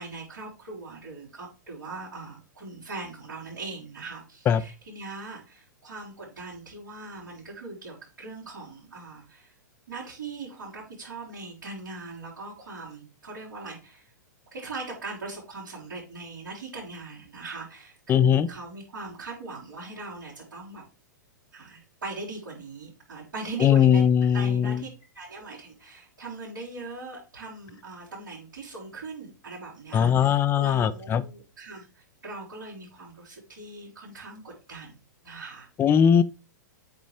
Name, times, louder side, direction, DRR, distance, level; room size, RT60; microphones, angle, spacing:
voice 1, 0.0-9.5 9.9-14.1 14.5-20.8 21.5-24.9 25.1-35.0 35.2-35.7, right 3 dB, 80° right, 3.7 m, -40 dB
voice 2, 18.1-18.5 23.6-24.8 29.9-31.2 35.8-36.2, left 8 dB, 20° left, 0.5 m, -20 dB
8.0 x 3.1 x 4.8 m
hypercardioid pair, 110°, 10 cm